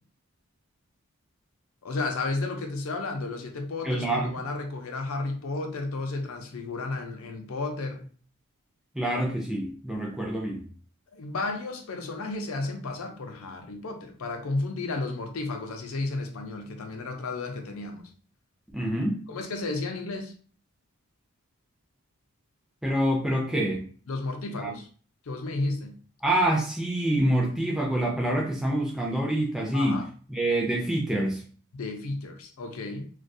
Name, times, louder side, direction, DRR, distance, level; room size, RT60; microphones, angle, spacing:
voice 1, 1.8-8.0 11.1-18.1 19.3-20.3 24.1-24.9 25.3-26.0 29.7-30.0 31.7-33.1, left 3 dB, 75° left, 0.5 m, -33 dB
voice 2, 3.8-4.3 8.9-10.7 18.7-19.2 22.8-23.8 24.6-24.7 26.2-30.0 30.3-31.4, right 1 dB, ahead, 0.3 m, -26 dB
2.3 x 2.3 x 2.6 m
head